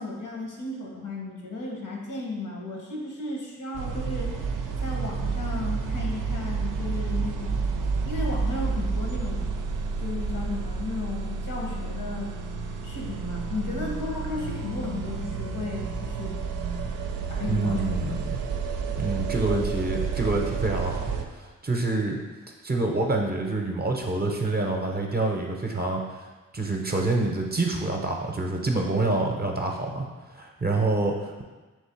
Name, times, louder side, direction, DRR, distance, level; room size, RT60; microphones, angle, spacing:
voice 1, 0.0-4.5 4.8-7.6 8.0-9.5 10.0-12.3 12.8-16.3 17.3-18.2, left 2 dB, 70° left, -1 dB, 1.1 m, -34 dB
sound 1, 3.7-21.2, right 5 dB, 75° right, 0.5 m, -30 dB
voice 2, 17.5-18.4 19.0-21.1 21.4-22.2 22.6-26.2 26.5-30.1 30.3-31.4, right 2 dB, 30° right, 1 dB, 0.7 m, -27 dB
3.3 x 3.2 x 4.4 m, 1.2 s
cardioid pair, 45°, 32 cm